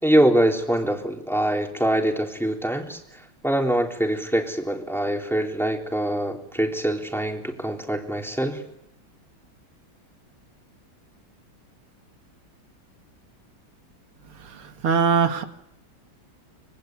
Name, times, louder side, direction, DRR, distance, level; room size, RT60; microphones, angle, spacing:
voice 1, 0.0-3.0 3.4-8.6, right 1 dB, ahead, 2 dB, 3.4 m, -24 dB
voice 2, 14.5-15.4, right 6 dB, 90° right, 6 dB, 2.8 m, -22 dB
25.5 x 23.5 x 9.4 m, 0.78 s
omnidirectional pair, 2.3 m